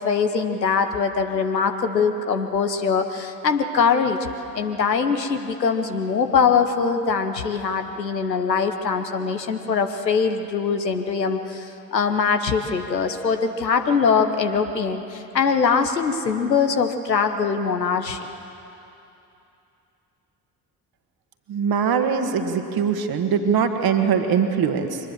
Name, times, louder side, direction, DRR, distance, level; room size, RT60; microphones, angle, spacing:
voice 1, 0.0-4.2 4.5-18.2, left 5 dB, 85° left, 7 dB, 1.0 m, -22 dB
voice 2, 21.5-25.0, right 6 dB, 45° right, 6 dB, 1.8 m, -22 dB
23.5 x 19.5 x 7.3 m, 2.8 s
figure-of-eight pair, 45°, 48 cm